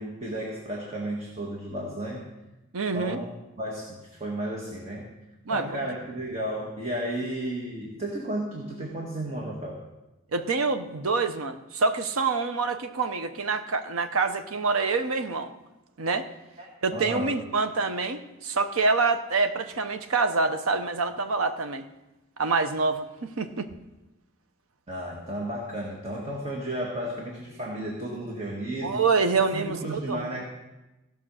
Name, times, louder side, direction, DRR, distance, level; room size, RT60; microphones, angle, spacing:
voice 1, 0.0-2.3 2.9-3.3 3.6-5.1 5.5-9.8 16.6-16.7 16.9-17.3 24.9-29.0 29.5-30.4, right 1 dB, 30° right, -2 dB, 1.5 m, -33 dB
voice 2, 2.7-3.2 5.5-5.8 10.3-15.5 16.0-16.3 16.8-21.9 22.4-23.7 28.8-30.4, right 4 dB, 90° right, 8 dB, 0.7 m, -26 dB
16.0 x 5.4 x 6.2 m, 1.0 s
head